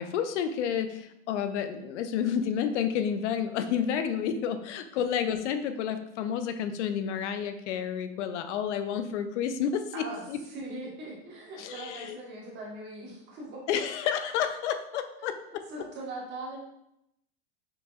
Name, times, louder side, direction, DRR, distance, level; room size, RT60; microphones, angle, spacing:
voice 1, 0.0-10.4 11.6-12.2 13.7-15.6, left 8 dB, 85° left, 9 dB, 0.5 m, -30 dB
voice 2, 9.9-13.6 15.7-16.6, right 2 dB, 30° right, -4 dB, 1.3 m, -40 dB
5.9 x 2.7 x 2.4 m, 0.80 s
supercardioid pair, 150°, 35 cm